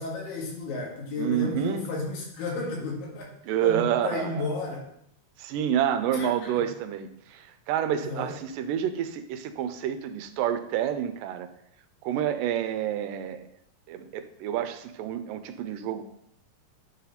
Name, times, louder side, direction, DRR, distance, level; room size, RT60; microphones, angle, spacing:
voice 1, 0.0-3.3 3.6-4.8 6.1-6.7 7.9-8.3, left 3 dB, 80° left, -2 dB, 3.3 m, -33 dB
voice 2, 1.2-1.9 3.5-4.5 5.4-11.5 12.0-13.5 13.9-16.0, right 10 dB, 85° right, 10 dB, 2.2 m, -28 dB
9.2 x 4.1 x 4.2 m, 0.73 s
omnidirectional pair, 3.9 m